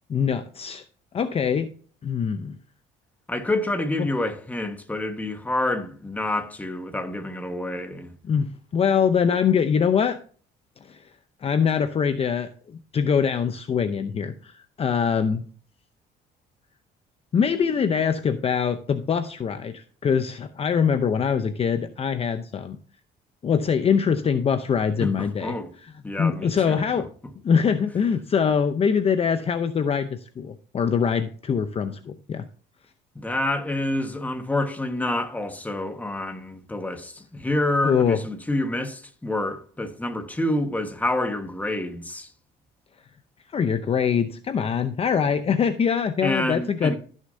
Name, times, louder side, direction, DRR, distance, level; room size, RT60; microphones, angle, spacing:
voice 1, 0.1-0.8 1.1-1.7 2.0-2.6 4.0-4.1 8.2-10.2 10.8-11.1 11.4-15.4 17.3-22.8 23.4-25.6 26.2-27.1 27.4-32.4 37.8-38.2 43.5-47.0, left 6 dB, 35° left, 0.7 m, -23 dB
voice 2, 3.3-8.1 25.0-25.7 26.0-27.0 33.1-42.3 46.2-47.0, left 1 dB, 10° left, 1.4 m, -28 dB
15.0 x 6.5 x 2.7 m
cardioid pair, 110°, 17 cm